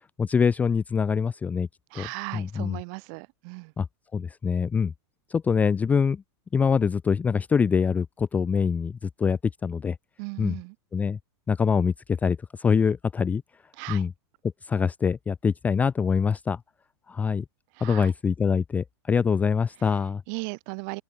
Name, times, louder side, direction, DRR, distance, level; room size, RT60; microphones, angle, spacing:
voice 1, 0.2-1.7 1.9-2.1 2.3-2.8 3.8-3.9 4.1-4.9 5.3-6.2 6.5-10.0 10.4-10.6 10.9-11.2 11.5-13.4 13.9-14.1 14.6-16.6 17.1-17.4 17.8-20.2, left 6 dB, 10° left, 0.6 m, -24 dB
voice 2, 1.9-3.7 10.2-10.8 13.8-14.0 17.7-18.1 19.9-20.0 20.3-21.0, right 40 dB or more, 45° right, 7.5 m, -37 dB
open air
supercardioid pair, 160°, 14 cm